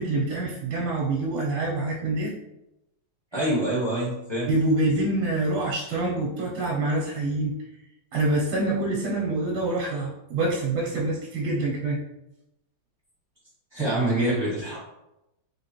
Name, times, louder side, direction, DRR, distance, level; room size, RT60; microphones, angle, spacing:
voice 1, 0.0-2.3 4.5-7.5 8.1-12.0, right 2 dB, 85° right, -3 dB, 1.6 m, -26 dB
voice 2, 3.3-4.5 13.7-14.8, right 1 dB, 20° right, -7 dB, 0.8 m, -25 dB
3.8 x 3.2 x 2.9 m, 0.89 s
omnidirectional pair, 2.3 m